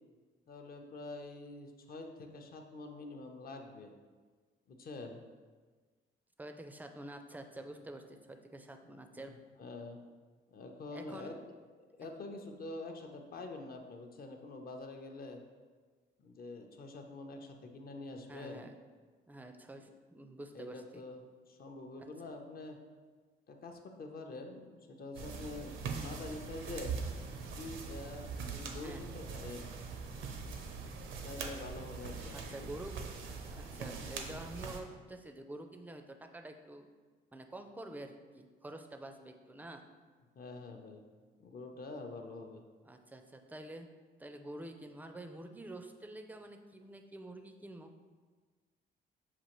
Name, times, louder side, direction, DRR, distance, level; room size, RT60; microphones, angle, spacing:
voice 1, 0.5-3.9 4.7-5.2 9.2-9.3 9.6-10.0 10.5-11.3 11.7-15.4 16.2-18.7 20.5-21.2 21.5-22.8 23.5-27.0 27.6-29.7 31.2-32.7 40.4-41.0 41.4-42.6, left 2 dB, 50° left, 3 dB, 0.6 m, -46 dB
voice 2, 6.4-9.3 10.9-11.3 18.3-18.8 19.3-21.0 22.0-22.1 28.8-29.1 32.3-36.9 37.3-39.8 42.8-43.9 44.2-47.9, right 1 dB, 10° right, 5 dB, 0.4 m, -48 dB
sound 1, 25.1-34.8, right 5 dB, 80° right, 0.6 m, -42 dB
6.8 x 2.5 x 3.0 m, 1.4 s
cardioid pair, 90°, 20 cm